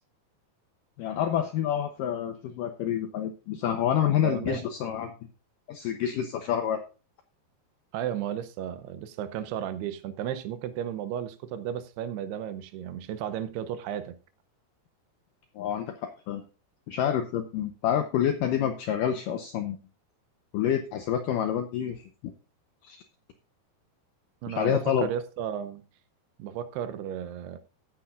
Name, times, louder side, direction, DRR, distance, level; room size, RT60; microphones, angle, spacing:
voice 1, 1.0-5.1 5.7-6.8 15.6-16.4 16.9-19.8 20.5-22.0 22.8-23.0 24.5-25.1, left 9 dB, 85° left, 1.9 m, -28 dB
voice 2, 4.2-4.7 7.9-14.2 24.4-25.8 26.4-27.6, right 10 dB, 80° right, 2.7 m, -34 dB
15.5 x 8.8 x 2.5 m
omnidirectional pair, 4.9 m